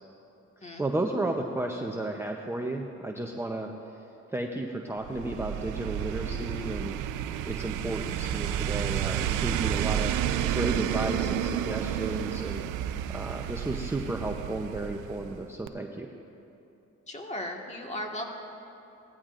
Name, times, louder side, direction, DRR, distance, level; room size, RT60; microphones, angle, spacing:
voice 1, 0.8-3.7 4.3-7.0 7.5-10.1 10.5-12.6 13.1-16.1, right 2 dB, 10° right, 1 dB, 0.7 m, -33 dB
ghostly noise, 5.0-15.4 15.7-15.8, right 10 dB, 90° right, 0.5 m, -31 dB
voice 2, 17.1-18.2, left 1 dB, 20° left, 1 dB, 1.7 m, -36 dB
18.0 x 14.5 x 2.5 m, 2.8 s
cardioid pair, 90°, 30 cm